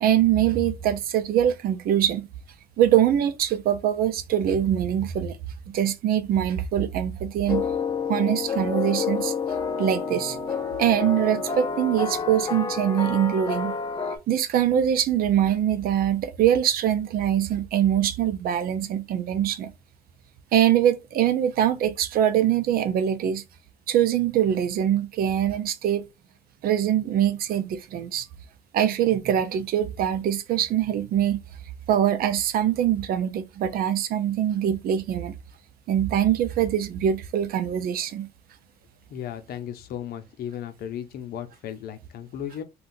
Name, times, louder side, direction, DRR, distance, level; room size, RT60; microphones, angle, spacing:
voice 1, 0.0-2.3 2.8-5.4 5.7-7.7 8.1-9.3 9.8-10.4 10.8-13.7 14.3-19.7 20.5-23.4 23.9-26.1 26.6-28.3 28.7-31.4 31.9-35.4 35.9-38.3, right 10 dB, 60° right, 0.5 m, -23 dB
sound 1, 7.5-14.2, left 6 dB, 25° left, 0.5 m, -29 dB
voice 2, 39.1-42.6, left 9 dB, 65° left, 0.6 m, -35 dB
2.5 x 2.3 x 3.6 m
cardioid pair, 110°, 17 cm